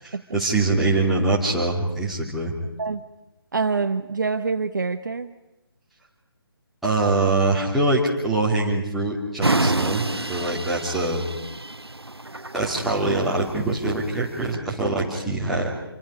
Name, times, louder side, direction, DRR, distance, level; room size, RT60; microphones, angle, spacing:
voice 1, 0.0-2.5 6.8-11.2 12.5-15.7, right 2 dB, ahead, -7 dB, 3.0 m, -23 dB
voice 2, 3.5-5.3, right 4 dB, 50° right, 9 dB, 1.0 m, -25 dB
sound 1, 9.4-14.6, right 2 dB, 80° right, 1.1 m, -28 dB
27.0 x 26.5 x 4.9 m, 0.98 s
figure-of-eight pair, 150°, 13 cm